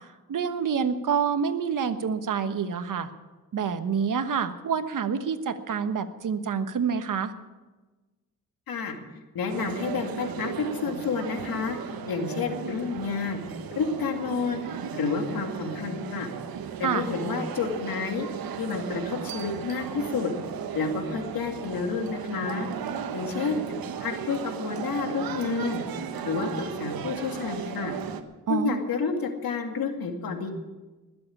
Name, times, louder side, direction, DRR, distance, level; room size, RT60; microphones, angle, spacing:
voice 1, 0.3-3.1 3.5-7.3 16.8-17.0 28.5-28.8, right 6 dB, 60° right, 9 dB, 1.3 m, -27 dB
voice 2, 8.7-9.0 9.3-11.8 12.1-13.4 13.7-14.6 14.9-16.3 16.8-18.3 18.6-20.3 20.7-22.7 23.1-23.6 24.0-25.8 26.2-27.9 28.5-30.5, left 5 dB, 80° left, 4 dB, 2.4 m, -29 dB
sound 1, 9.5-28.2, right 8 dB, 90° right, 1.2 m, -36 dB
20.0 x 7.8 x 8.7 m, 1.2 s
cardioid pair, 80°, 35 cm